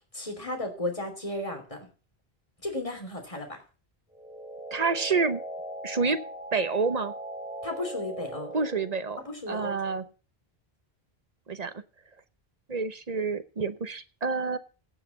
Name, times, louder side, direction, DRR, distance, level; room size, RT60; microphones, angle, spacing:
voice 1, 0.1-1.8 2.6-3.6 7.6-8.5 9.2-10.0, left 1 dB, 30° left, 3 dB, 3.2 m, -34 dB
sound 1, 4.1-9.0, right 1 dB, 5° right, 1.6 m, -39 dB
voice 2, 4.7-5.4 5.8-6.2 6.5-7.1 8.5-10.1 11.5-11.7 12.7-14.6, right 4 dB, 40° right, 11 dB, 1.0 m, -28 dB
16.5 x 5.9 x 7.0 m, 0.37 s
omnidirectional pair, 1.0 m